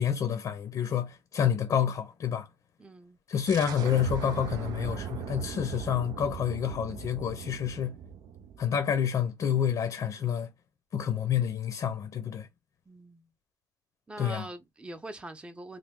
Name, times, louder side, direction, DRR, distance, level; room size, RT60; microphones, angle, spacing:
voice 1, 0.0-2.5 3.3-7.9 8.6-10.5 10.9-12.5 14.2-14.5, left 8 dB, 60° left, 0.6 m, -28 dB
voice 2, 2.8-3.2 12.9-13.3 14.1-15.8, right 2 dB, 15° right, 0.7 m, -43 dB
sound 1, 3.5-9.0, right 8 dB, 80° right, 0.4 m, -39 dB
3.2 x 2.2 x 3.6 m
cardioid pair, 105°, 7 cm